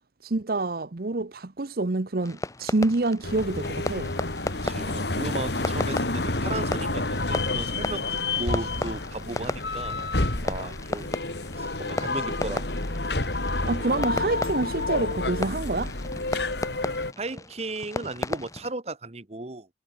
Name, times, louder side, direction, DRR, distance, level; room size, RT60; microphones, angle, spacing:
voice 1, 0.2-4.1 13.6-15.9, right 2 dB, 55° right, 0.9 m, -27 dB
Fireworks, 2.2-18.7, left 2 dB, 20° left, 0.8 m, -36 dB
sound 1, 3.2-17.1, left 2 dB, 70° left, 3.1 m, -29 dB
voice 2, 4.6-8.1 8.4-10.0 10.4-11.1 11.6-12.7 17.2-19.7, right 2 dB, 35° right, 1.3 m, -35 dB
head